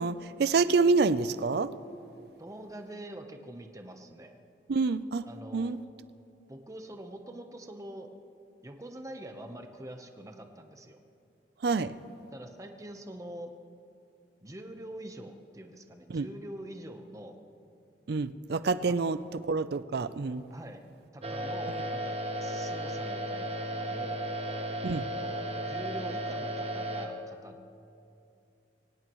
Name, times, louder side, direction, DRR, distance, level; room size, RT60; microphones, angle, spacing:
voice 1, 0.0-1.7 4.7-5.2 5.5-5.8 11.6-11.9 16.1-16.3 18.1-19.2 19.5-20.4 24.8-25.0, right 4 dB, 65° right, 14 dB, 0.5 m, -27 dB
voice 2, 2.4-4.3 5.2-5.8 6.5-8.1 8.6-11.0 12.3-13.5 14.4-17.4 20.5-20.8 21.1-22.1 22.4-24.2 25.0-27.7, right 1 dB, 20° right, 4 dB, 0.9 m, -44 dB
sound 1, 21.2-27.1, right 1 dB, 35° right, 1.2 m, -34 dB
23.5 x 18.5 x 3.1 m, 2.6 s
head